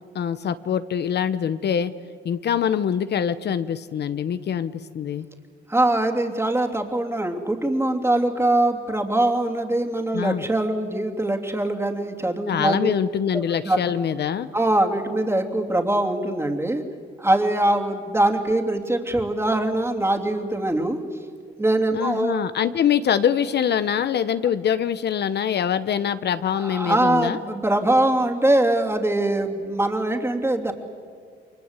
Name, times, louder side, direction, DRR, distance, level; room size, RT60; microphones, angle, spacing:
voice 1, 0.1-1.9 2.2-5.3 10.1-10.5 12.5-14.5 21.9-27.4, left 8 dB, 55° left, 12 dB, 0.9 m, -24 dB
voice 2, 5.7-12.9 13.3-13.8 14.5-16.8 17.2-21.0 21.6-22.4 26.6-30.7, right 1 dB, 10° right, 4 dB, 3.0 m, -22 dB
29.5 x 23.5 x 8.2 m, 2.1 s
cardioid pair, 90°, 20 cm